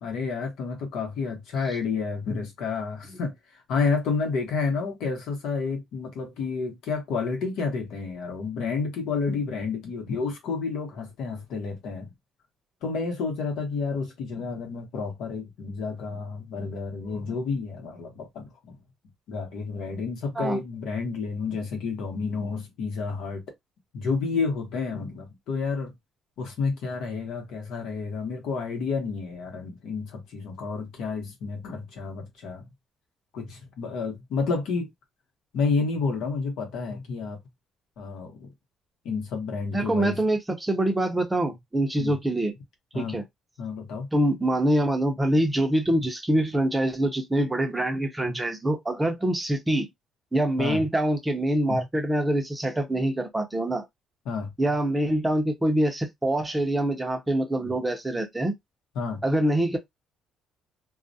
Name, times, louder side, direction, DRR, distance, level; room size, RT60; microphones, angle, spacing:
voice 1, 0.0-12.1 12.8-18.8 19.3-23.4 23.9-25.9 26.4-32.7 33.3-34.9 35.5-37.4 38.0-38.5 39.0-40.2 42.0-42.2 42.9-43.2 43.6-44.1 46.0-46.1 48.3-48.4 50.6-50.9 51.7-51.9 54.2-54.5 57.6-57.7 58.9-59.2, left 4 dB, 80° left, 0.9 m, -30 dB
voice 2, 39.7-42.5 42.9-43.2 44.1-49.9 50.3-53.9 54.6-58.5 59.2-59.8, right 1 dB, 10° right, 0.5 m, -25 dB
2.3 x 2.0 x 2.6 m
cardioid pair, 150°, 0 cm